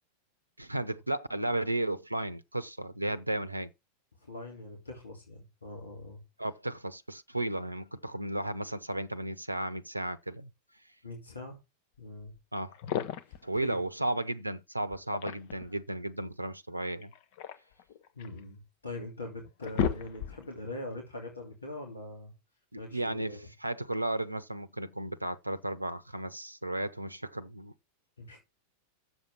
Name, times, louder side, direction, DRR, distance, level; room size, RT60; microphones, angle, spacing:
voice 1, 0.6-3.7 6.4-10.5 12.5-12.7 13.4-17.1 22.7-27.7, right 1 dB, 85° right, 0.7 m, -34 dB
voice 2, 4.2-6.2 11.0-11.6 12.0-12.3 13.3-13.7 18.2-22.3 22.8-23.5 28.2-28.4, left 1 dB, 75° left, 2.8 m, -42 dB
sound 1, 12.3-12.4 12.7-13.5 14.9-15.7 17.0-18.4 19.0-19.1 19.4-20.6, left 8 dB, 50° left, 1.1 m, -34 dB
7.8 x 7.2 x 5.8 m
figure-of-eight pair, 90°, 0 cm